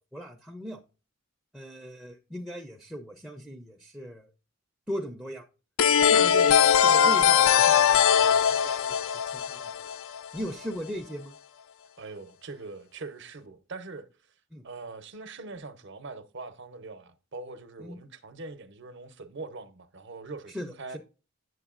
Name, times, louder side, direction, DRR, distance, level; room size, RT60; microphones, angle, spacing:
voice 1, 0.1-0.8 1.5-4.3 4.9-5.5 6.1-9.9 10.3-11.3 14.5-14.7 17.8-18.0 20.5-21.0, equal, 5° right, 0.5 m, -38 dB
sound 1, 5.8-10.4, left 8 dB, 70° left, 0.3 m, -21 dB
voice 2, 12.0-14.1 14.6-21.0, right 3 dB, 55° right, 0.7 m, -42 dB
7.9 x 7.6 x 2.4 m
head